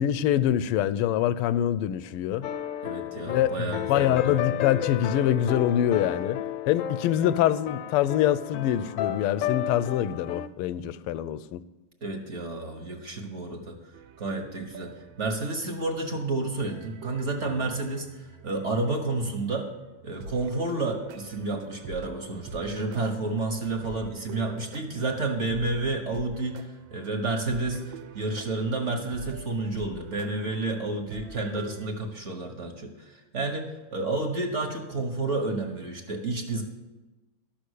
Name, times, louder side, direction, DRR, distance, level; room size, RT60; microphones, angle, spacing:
voice 1, 0.0-2.5 3.2-6.4 6.7-11.6, left 11 dB, 90° left, 16 dB, 1.5 m, -25 dB
sound 1, 2.4-10.5, left 11 dB, 75° left, 1.1 m, -32 dB
voice 2, 2.8-4.4 12.0-13.8 14.2-19.7 20.0-36.6, right 2 dB, 40° right, 2 dB, 1.4 m, -30 dB
sound 2, 13.9-31.9, right 4 dB, 70° right, 1.4 m, -46 dB
12.0 x 6.6 x 8.2 m, 1.1 s
omnidirectional pair, 2.4 m